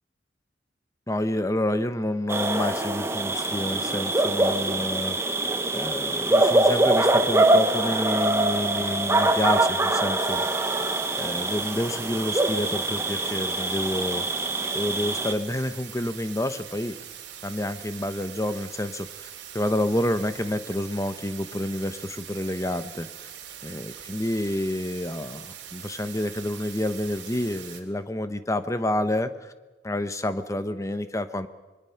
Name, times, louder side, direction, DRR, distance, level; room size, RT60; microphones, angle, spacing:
voice 1, 1.1-5.4 5.7-10.4 11.2-14.4 14.7-16.9 17.4-19.3 19.5-23.1 23.6-25.5 25.7-29.5 29.8-31.5, left 1 dB, 15° left, 11 dB, 1.0 m, -29 dB
sound 1, 2.3-15.3, right 2 dB, 15° right, 1.1 m, -24 dB
sound 2, 10.2-27.8, right 9 dB, 70° right, 2.9 m, -42 dB
25.5 x 22.0 x 5.9 m, 1.2 s
head